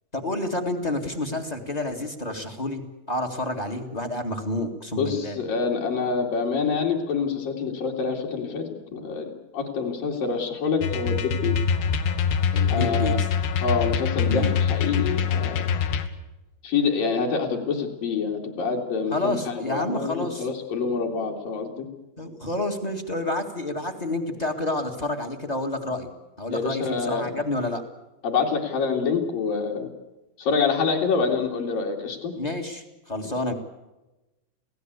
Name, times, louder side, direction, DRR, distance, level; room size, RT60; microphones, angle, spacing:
voice 1, 0.1-2.8 3.1-5.4 12.5-13.3 14.3-14.6 19.1-20.5 22.2-26.1 26.4-27.8 32.3-33.5, left 1 dB, 25° left, 6 dB, 0.9 m, -29 dB
voice 2, 5.0-11.5 12.7-13.2 13.6-15.6 16.6-20.1 20.4-21.9 26.5-27.4 28.2-29.9 30.4-32.3, left 5 dB, 65° left, -3 dB, 3.9 m, -26 dB
sound 1, 10.8-16.1, left 7 dB, 80° left, 3.2 m, -24 dB
27.5 x 17.0 x 8.2 m, 1.0 s
omnidirectional pair, 4.4 m